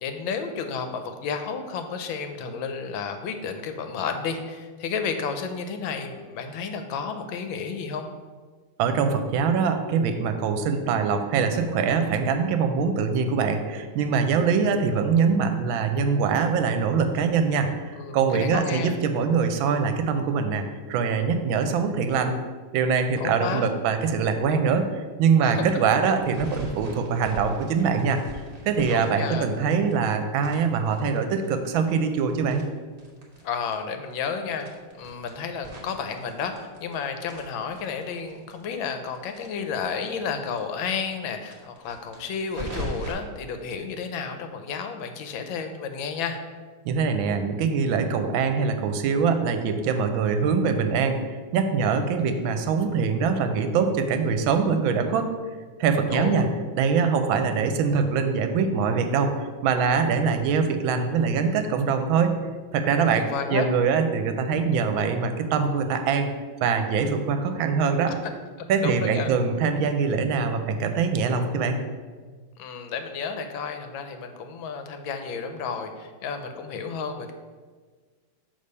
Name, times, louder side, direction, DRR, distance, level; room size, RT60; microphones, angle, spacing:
voice 1, 0.0-8.1 18.0-18.9 23.2-23.7 25.4-25.6 28.9-29.5 33.4-34.7 34.9-46.4 56.1-56.5 63.0-63.7 68.1-68.3 68.6-69.3 72.6-77.3, left 6 dB, 80° left, 7 dB, 1.4 m, -32 dB
voice 2, 8.8-22.3 22.7-24.9 25.2-28.2 28.7-32.6 46.8-51.2 51.5-55.3 55.8-56.5 56.7-62.3 62.7-66.3 66.6-68.1 68.7-71.8, right 5 dB, 80° right, 7 dB, 1.4 m, -23 dB
sound 1, 26.2-30.1 30.4-33.4 33.7-33.8 34.1-34.2 34.6-36.9 37.2-40.3 40.6-40.7 40.9-41.0 41.4-43.1, right 1 dB, 25° right, 0.9 m, -40 dB
6.7 x 3.3 x 5.4 m, 1.5 s
omnidirectional pair, 2.2 m